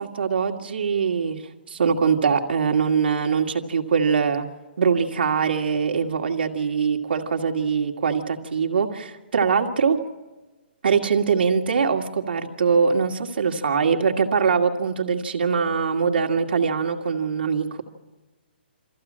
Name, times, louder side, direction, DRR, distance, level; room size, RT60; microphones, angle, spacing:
voice 1, 0.0-1.4 1.7-4.5 4.8-10.0 10.8-17.8, right 6 dB, 70° right, 3 dB, 2.1 m, -22 dB
23.5 x 15.0 x 7.6 m, 1.2 s
hypercardioid pair, 170°, 6 cm